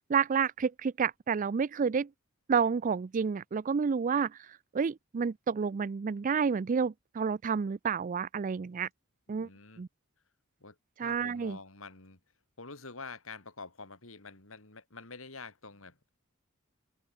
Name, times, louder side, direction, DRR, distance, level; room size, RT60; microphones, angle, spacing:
voice 1, 0.1-2.1 2.5-8.9 9.3-9.5 9.8-9.9 11.0-11.6, right 6 dB, 40° right, 0.4 m, -30 dB
voice 2, 9.3-9.8 10.6-12.2 12.6-16.1, left 4 dB, 70° left, 3.5 m, -47 dB
head